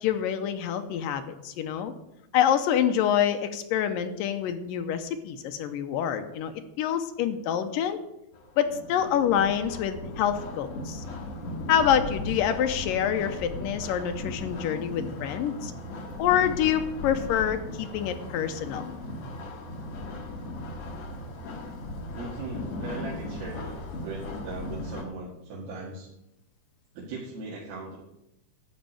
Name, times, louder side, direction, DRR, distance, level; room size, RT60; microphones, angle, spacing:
voice 1, 0.0-1.9 2.3-8.0 8.6-11.0 11.7-15.7 16.2-18.8, left 9 dB, 75° left, 8 dB, 2.4 m, -26 dB
sound 1, 8.3-25.0, left 2 dB, 55° left, 2.5 m, -37 dB
voice 2, 22.1-23.8 24.0-26.1 27.0-28.0, right 3 dB, 80° right, -5 dB, 3.8 m, -39 dB
12.5 x 5.4 x 9.0 m, 0.85 s
omnidirectional pair, 4.2 m